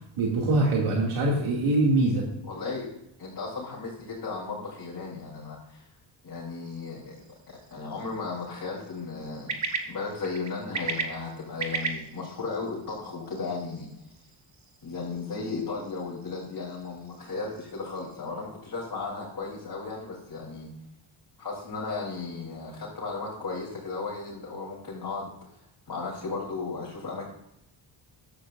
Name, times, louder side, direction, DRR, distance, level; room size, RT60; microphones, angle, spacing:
voice 1, 0.2-2.3, right 2 dB, 85° right, -2 dB, 2.6 m, -23 dB
voice 2, 2.4-2.9 3.2-5.9 6.2-7.2 7.5-9.5 9.8-13.9 14.8-20.7 21.4-27.3, left 4 dB, 45° left, -6 dB, 3.6 m, -35 dB
sound 1, 6.6-18.3, right 4 dB, 35° right, 1.5 m, -39 dB
15.0 x 11.5 x 2.6 m, 0.83 s
cardioid pair, 140°, 49 cm